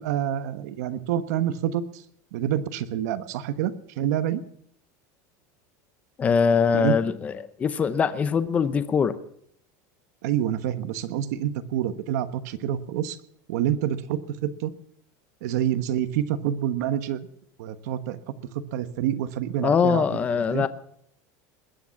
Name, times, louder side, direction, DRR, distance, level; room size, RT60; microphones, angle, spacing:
voice 1, 0.0-2.0 2.3-4.4 6.7-7.0 10.2-13.2 13.5-14.7 15.4-17.3 17.6-20.0 20.3-20.7, right 11 dB, 70° right, 11 dB, 1.3 m, -27 dB
voice 2, 6.2-9.2 19.6-20.7, left 6 dB, 15° left, 13 dB, 0.7 m, -22 dB
21.0 x 9.1 x 7.2 m, 0.69 s
supercardioid pair, 180°, 9 cm